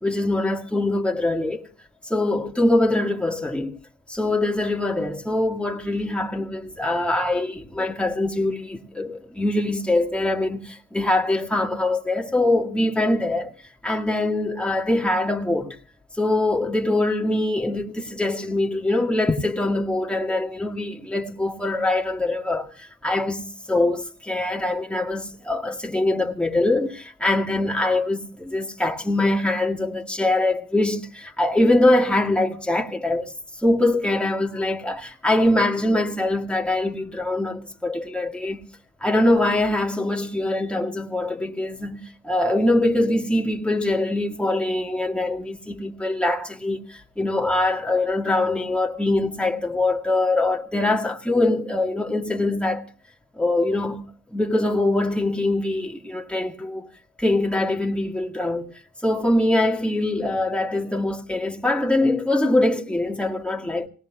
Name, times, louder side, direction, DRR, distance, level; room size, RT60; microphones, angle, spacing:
voice 1, 0.0-1.7 2.0-3.8 4.1-13.5 13.8-15.8 16.1-33.3 33.6-38.7 39.0-52.9 53.3-54.0 54.3-56.9 57.2-58.7 59.0-63.9, left 2 dB, 5° left, 2.1 m, -23 dB
27.0 x 18.5 x 2.4 m
cardioid pair, 55°, 32 cm